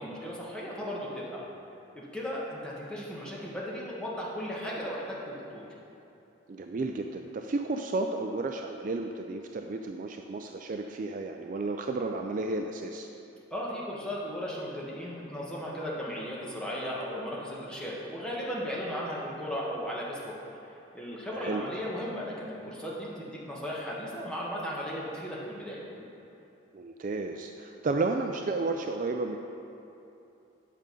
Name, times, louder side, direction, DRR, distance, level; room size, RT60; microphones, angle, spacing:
voice 1, 0.0-1.4 1.9-5.7 13.5-20.3 20.9-25.8, equal, 5° left, -6 dB, 1.3 m, -36 dB
voice 2, 6.5-13.1 21.3-21.6 26.7-29.4, right 3 dB, 40° right, 4 dB, 0.3 m, -32 dB
9.1 x 6.2 x 5.2 m, 2.9 s
head